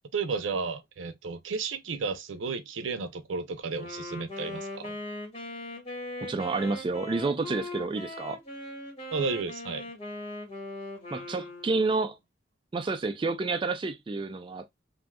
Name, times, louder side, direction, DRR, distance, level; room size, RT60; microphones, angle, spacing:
voice 1, 0.1-4.9 9.1-9.9, right 4 dB, 90° right, 0.6 m, -33 dB
Wind instrument woodwind instrument, 3.7-12.1, left 1 dB, 30° left, 1.6 m, -40 dB
voice 2, 6.2-8.4 11.1-12.2 12.7-14.8, right 3 dB, 25° right, 0.3 m, -29 dB
3.4 x 2.6 x 2.2 m
head